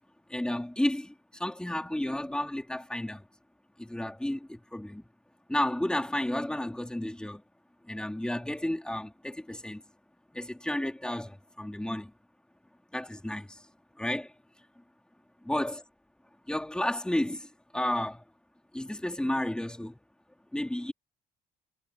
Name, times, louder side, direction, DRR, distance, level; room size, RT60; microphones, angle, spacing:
voice 1, 0.3-3.2 3.8-5.1 5.5-7.4 7.9-9.8 10.3-12.1 12.9-13.6 14.0-14.3 15.5-15.8 16.5-18.2 18.7-20.0 20.5-20.9, left 1 dB, 5° left, 3.7 m, -32 dB
cardioid pair, 110°, 17 cm